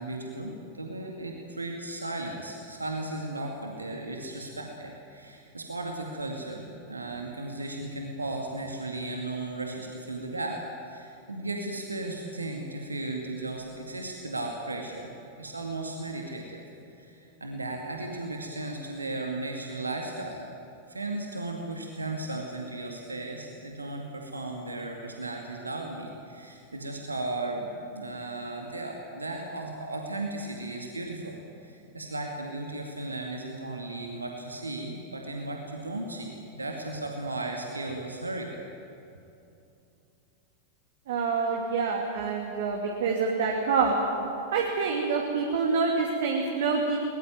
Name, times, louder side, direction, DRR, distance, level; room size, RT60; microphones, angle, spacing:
voice 1, 0.0-16.6 16.9-20.5 20.9-38.5, right 2 dB, 80° right, 1 dB, 2.2 m, -36 dB
voice 2, 41.1-44.0 44.5-47.0, right 4 dB, 60° right, 0 dB, 2.7 m, -26 dB
21.5 x 20.5 x 9.3 m, 2.8 s
figure-of-eight pair, 90°, 0 cm